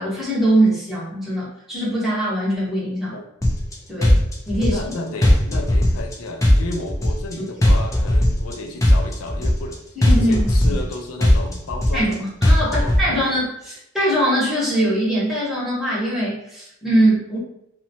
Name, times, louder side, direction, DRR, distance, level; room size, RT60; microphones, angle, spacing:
voice 1, 0.0-3.1 3.9-4.2 4.5-4.8 10.0-10.8 11.9-17.4, right 1 dB, ahead, -8 dB, 0.9 m, -22 dB
sound 1, 3.4-3.7 4.0-4.9 5.2-6.1 6.4-7.3 7.6-8.5 8.8-9.7 10.0-10.9 11.2-12.1 12.4-13.0, left 1 dB, 15° left, 0.4 m, -16 dB
voice 2, 4.7-12.3 12.7-13.3, left 2 dB, 85° left, 4 dB, 0.4 m, -32 dB
2.8 x 2.1 x 2.7 m, 0.79 s
head